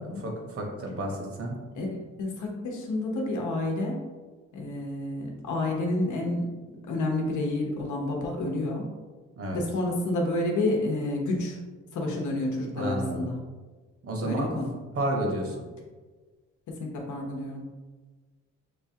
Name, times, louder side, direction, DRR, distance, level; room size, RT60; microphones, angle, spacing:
voice 1, 0.0-1.6 9.4-9.6 12.8-13.3 14.0-14.6 15.0-15.6, right 1 dB, 50° right, 1 dB, 1.0 m, -31 dB
voice 2, 1.8-4.0 4.5-6.5 6.9-8.9 9.5-11.6 11.9-13.4 14.2-14.7 16.7-17.6, left 2 dB, 75° left, 0 dB, 0.9 m, -29 dB
5.8 x 2.3 x 2.8 m, 1.3 s
cardioid pair, 90°, 30 cm